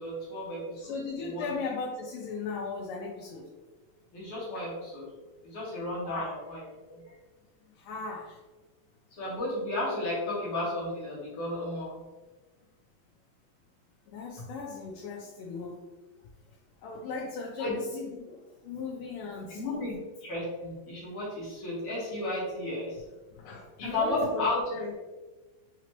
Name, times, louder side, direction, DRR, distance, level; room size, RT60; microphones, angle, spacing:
voice 1, 0.0-1.5 4.1-5.1 5.4-6.6 6.9-7.0 9.2-11.9 17.6-17.7 19.5-19.9 20.2-23.0 23.8-24.7, left 1 dB, 60° left, -7 dB, 1.5 m, -33 dB
voice 2, 0.8-3.4 6.0-6.3 7.8-8.4 14.1-15.8 16.8-19.8 23.3-24.5 24.7-24.9, left 4 dB, 80° left, -3 dB, 2.1 m, -37 dB
5.9 x 2.9 x 3.0 m, 1.2 s
omnidirectional pair, 4.2 m